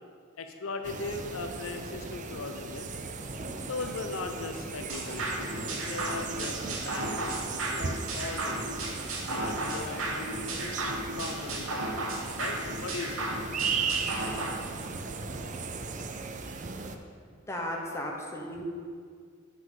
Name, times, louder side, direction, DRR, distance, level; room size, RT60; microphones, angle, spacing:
voice 1, 0.4-2.9 3.6-8.7 9.3-13.3, left 3 dB, 80° left, 5 dB, 0.6 m, -39 dB
sound 1, 0.8-17.0, right 4 dB, 40° right, 0.4 m, -37 dB
sound 2, 4.9-14.5, right 2 dB, 80° right, 1.1 m, -34 dB
voice 2, 17.5-18.6, left 1 dB, 15° left, 0 dB, 0.8 m, -35 dB
7.4 x 6.1 x 3.7 m, 2.1 s
head